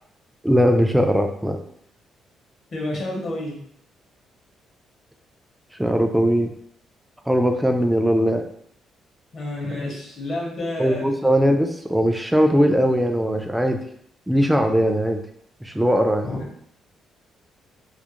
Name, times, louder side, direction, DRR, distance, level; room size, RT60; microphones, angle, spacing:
voice 1, 0.4-1.6 5.8-6.5 7.3-8.4 10.8-13.9 14.3-15.2 15.6-16.3, equal, 5° right, 5 dB, 0.3 m, -19 dB
voice 2, 2.7-3.6 9.3-11.2 16.2-16.5, left 1 dB, 55° left, -1 dB, 0.8 m, -29 dB
2.3 x 2.1 x 2.9 m, 0.67 s
cardioid pair, 90°, 0 cm